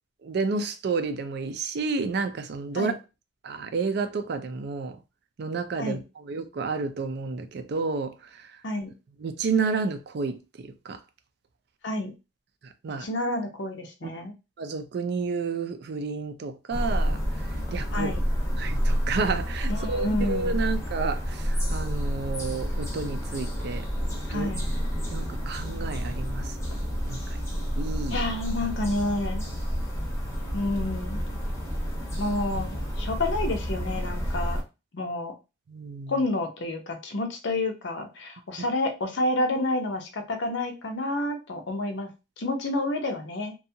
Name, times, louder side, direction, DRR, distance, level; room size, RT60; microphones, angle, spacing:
voice 1, 0.2-2.9 3.4-5.0 5.4-8.5 9.2-11.0 12.8-13.1 14.0-14.2 14.6-17.2 17.7-18.2 18.6-23.8 24.3-24.5 25.1-27.2 27.8-28.2 35.7-36.1, right 4 dB, 60° right, 0.4 m, -31 dB
voice 2, 13.0-14.3 17.9-18.2 19.7-20.6 24.3-24.7 28.1-29.4 30.5-31.2 32.2-34.6 34.9-35.3 36.1-42.1 42.4-43.5, left 2 dB, 70° left, 0.7 m, -29 dB
sound 1, 16.7-34.6, equal, 15° left, 0.7 m, -29 dB
2.6 x 2.3 x 2.7 m
head